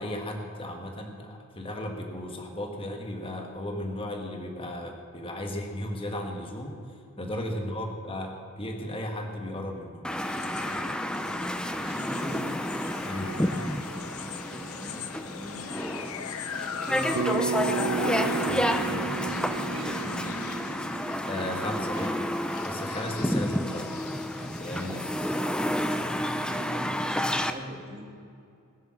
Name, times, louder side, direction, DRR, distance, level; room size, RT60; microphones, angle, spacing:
voice 1, 0.0-6.8 7.2-10.0 13.1-13.4 17.2-17.4 18.5-19.4 21.2-22.2 22.6-23.9 24.3-25.5, left 1 dB, 25° left, 3 dB, 1.5 m, -35 dB
voice 2, 7.1-7.5 11.8-12.5 14.2-15.7 16.7-17.7 19.5-20.0 25.7-28.1, equal, 25° right, 0 dB, 2.3 m, -41 dB
sound 1, 10.0-27.5, equal, 5° left, 0.6 m, -30 dB
sound 2, 10.1-26.6, left 6 dB, 80° left, 0.8 m, -40 dB
Bass guitar, 17.1-21.5, right 9 dB, 70° right, 0.4 m, -33 dB
20.5 x 7.1 x 7.5 m, 2.5 s
head